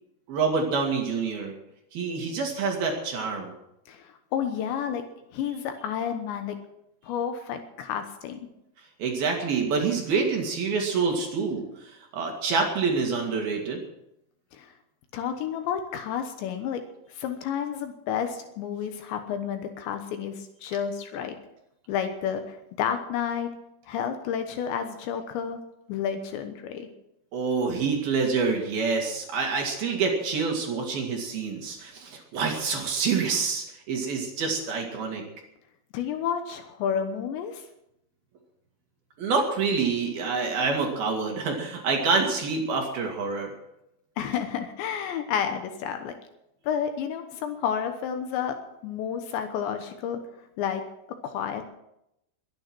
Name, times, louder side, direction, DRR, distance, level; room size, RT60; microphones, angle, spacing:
voice 1, 0.3-1.5 1.9-3.5 9.0-13.8 27.3-35.2 39.2-43.5, right 4 dB, 55° right, 1 dB, 3.5 m, -27 dB
voice 2, 3.9-5.0 5.3-6.6 7.0-8.4 14.5-14.7 15.1-16.8 17.1-21.4 21.9-23.5 23.9-25.6 25.9-26.9 35.9-37.6 44.2-46.2 46.6-48.6 48.8-50.2 50.6-50.8 51.2-51.6, left 8 dB, 75° left, 7 dB, 3.1 m, -30 dB
21.5 x 9.4 x 6.1 m, 0.83 s
omnidirectional pair, 5.7 m